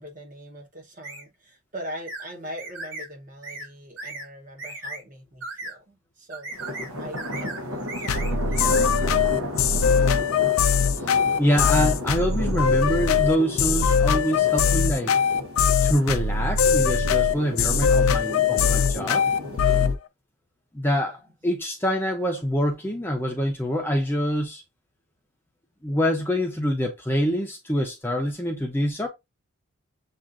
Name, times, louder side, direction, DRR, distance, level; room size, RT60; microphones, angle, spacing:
voice 1, 0.0-6.5 7.0-9.3 21.0-21.2, equal, 35° right, 1.0 m, -41 dB
sound 1, 1.0-1.2 2.1-2.3 2.6-3.1 3.4-3.7 4.0-4.3 4.6-5.0 5.4-5.7 6.3-6.9 7.2-7.6 7.9-8.8, right 2 dB, 60° right, 1.7 m, -36 dB
sound 2, 6.5-19.9, left 1 dB, 80° right, 1.1 m, -34 dB
sound 3, 8.1-20.0, left 6 dB, 75° left, 0.4 m, -21 dB
voice 2, 11.4-15.1 15.8-19.2 20.7-24.6 25.8-29.1, equal, 10° left, 0.6 m, -25 dB
7.2 x 2.5 x 2.5 m
head